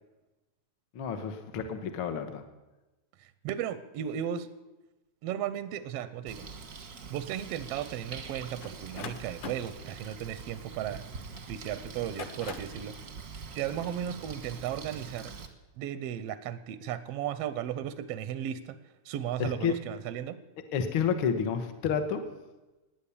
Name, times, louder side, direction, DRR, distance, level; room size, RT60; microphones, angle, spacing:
voice 1, 0.9-2.4 19.4-19.7 20.7-22.2, left 7 dB, 55° left, 8 dB, 1.5 m, -30 dB
voice 2, 3.2-4.5 5.2-6.5 7.1-11.0 11.5-12.9 13.5-15.3 15.8-18.7 19.0-20.4, right 10 dB, 75° right, 14 dB, 1.5 m, -35 dB
Bird, 6.3-15.5, right 5 dB, 50° right, 1.0 m, -44 dB
sound 1, 8.6-11.3 11.9-12.8, left 7 dB, 75° left, 1.0 m, -43 dB
18.5 x 9.3 x 7.0 m, 1.1 s
omnidirectional pair, 3.4 m